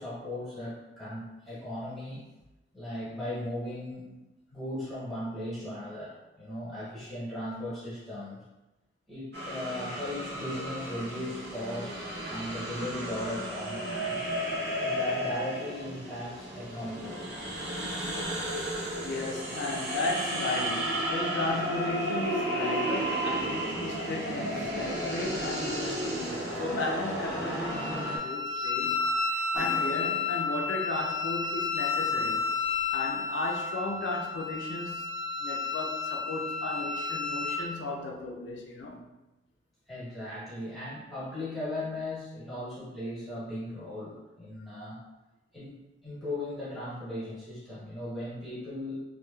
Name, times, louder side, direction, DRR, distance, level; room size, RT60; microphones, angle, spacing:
voice 1, 0.0-2.3 2.7-4.1 4.5-8.4 9.1-14.2 14.8-17.3 39.9-45.0 45.5-45.8 46.0-49.0, left 1 dB, ahead, -11 dB, 1.0 m, -37 dB
sound 1, 9.3-28.2, right 1 dB, 65° right, 0.7 m, -33 dB
voice 2, 19.0-29.1 29.5-32.5 32.9-39.1, left 2 dB, 75° left, 1 dB, 0.4 m, -35 dB
Wind instrument woodwind instrument, 27.7-37.6, left 4 dB, 20° right, 0.7 m, -31 dB
sound 2, 29.6-33.2, equal, 20° left, 0.7 m, -46 dB
3.0 x 2.2 x 2.2 m, 1.0 s
head